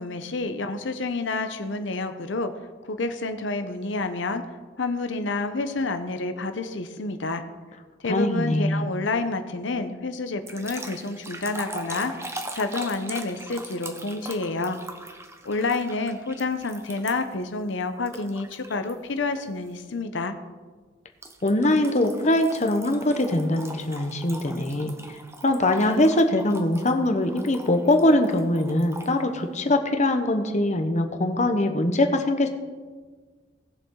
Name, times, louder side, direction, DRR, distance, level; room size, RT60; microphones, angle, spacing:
voice 1, 0.0-2.5 2.8-4.4 4.8-7.4 8.0-14.8 15.4-20.3, left 3 dB, 65° left, 8 dB, 0.7 m, -29 dB
voice 2, 8.1-8.8 21.4-24.9 25.4-32.5, left 1 dB, 35° left, 6 dB, 1.0 m, -22 dB
sound 1, 10.5-17.4 18.1-18.9 19.4-19.7 21.2-29.1, right 2 dB, 15° right, 0.9 m, -41 dB
18.5 x 7.0 x 3.8 m, 1.4 s
head